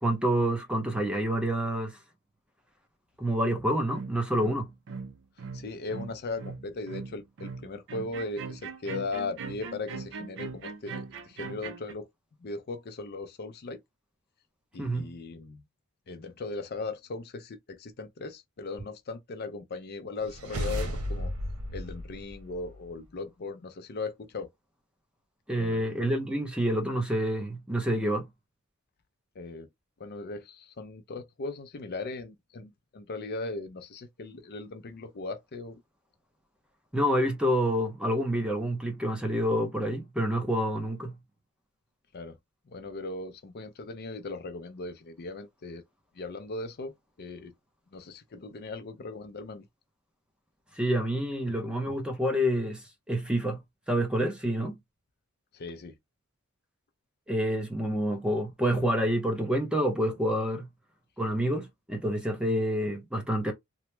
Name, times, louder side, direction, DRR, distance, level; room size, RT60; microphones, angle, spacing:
voice 1, 0.0-2.0 3.2-4.7 14.8-15.1 25.5-28.3 36.9-41.1 50.8-52.8 53.1-53.6 53.9-54.8 57.3-60.7 61.2-63.5, equal, 5° right, 0.6 m, -28 dB
sound 1, 3.9-11.9, right 4 dB, 55° right, 0.5 m, -40 dB
voice 2, 5.5-12.1 12.4-13.8 14.7-15.6 16.1-21.3 21.7-24.5 25.5-25.8 29.4-29.7 30.0-35.8 42.1-42.4 42.7-45.8 46.1-47.5 47.9-49.7 55.5-56.0, left 3 dB, 45° left, 0.5 m, -38 dB
sound 2, 20.2-23.0, equal, 85° right, 0.9 m, -34 dB
2.9 x 2.0 x 3.2 m
head